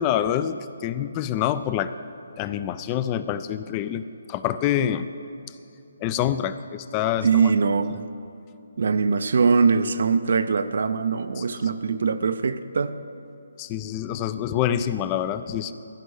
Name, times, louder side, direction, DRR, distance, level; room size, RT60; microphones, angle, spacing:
voice 1, 0.0-1.9 2.4-5.1 6.0-7.5 7.9-8.0 11.4-11.5 13.6-15.7, left 10 dB, 25° left, 13 dB, 0.4 m, -26 dB
voice 2, 7.2-8.0 8.8-13.0, right 5 dB, 65° right, 11 dB, 0.5 m, -22 dB
14.5 x 5.2 x 8.2 m, 2.7 s
hypercardioid pair, 155°, 0 cm